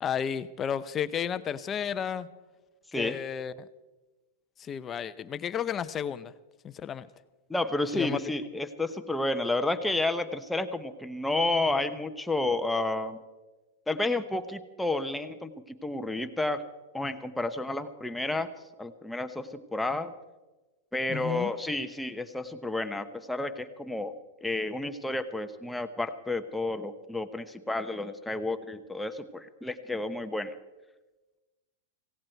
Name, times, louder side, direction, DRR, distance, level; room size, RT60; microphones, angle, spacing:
voice 1, 0.0-2.3 3.0-3.7 4.6-6.3 6.6-7.1 7.9-8.2 21.1-21.5, left 8 dB, 25° left, 14 dB, 0.7 m, -32 dB
voice 2, 7.5-13.2 13.9-15.5 15.8-16.6 16.9-18.5 18.8-20.1 20.9-24.1 24.4-30.5, left 2 dB, 5° left, 7 dB, 1.0 m, -31 dB
17.0 x 16.5 x 4.5 m, 1.2 s
hypercardioid pair, 125°, 0 cm